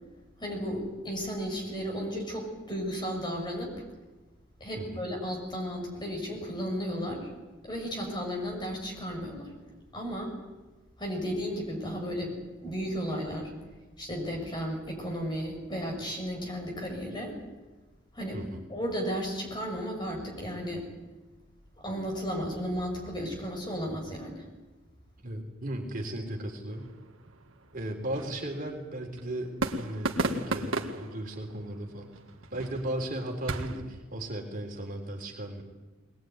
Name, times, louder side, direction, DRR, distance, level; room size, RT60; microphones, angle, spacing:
voice 1, 0.4-3.7 4.6-7.3 7.6-9.5 9.9-10.3 11.0-12.3 12.6-13.5 14.0-17.4 18.1-18.4 18.7-20.9 21.8-24.4, equal, 20° left, 1 dB, 6.8 m, -34 dB
voice 2, 4.7-5.0 18.3-18.7 25.2-26.9 27.7-32.1 32.5-35.6, right 1 dB, 45° right, 1 dB, 3.7 m, -36 dB
sound 1, 26.7-33.8, right 2 dB, 90° right, 2.0 m, -36 dB
21.0 x 21.0 x 9.6 m, 1.2 s
head